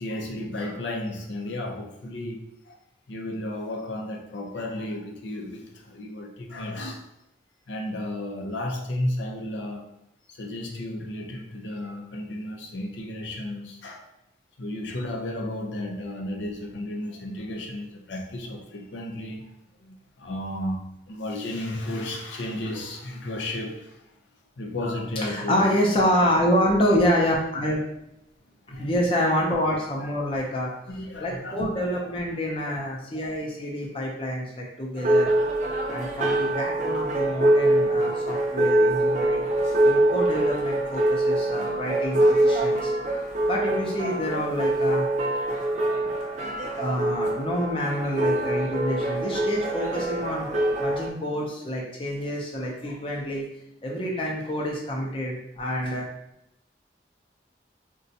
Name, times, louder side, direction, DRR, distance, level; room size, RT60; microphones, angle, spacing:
voice 1, 0.0-2.8 3.1-7.0 7.7-9.9 10.3-14.1 14.6-19.4 19.8-20.8 21.1-24.0 24.6-25.7 28.7-29.4 30.0-30.1 30.7-31.9 32.7-32.8, left 1 dB, 80° left, 1 dB, 0.5 m, -33 dB
voice 2, 25.2-27.8 28.7-30.7 31.2-35.3 35.9-39.5 39.8-42.9 43.5-45.1 46.8-50.5 50.8-53.5 53.8-56.1, equal, 30° left, -2 dB, 0.5 m, -27 dB
sound 1, 35.0-51.1, right 1 dB, 40° right, 0.5 m, -24 dB
3.9 x 2.2 x 2.7 m, 0.82 s
head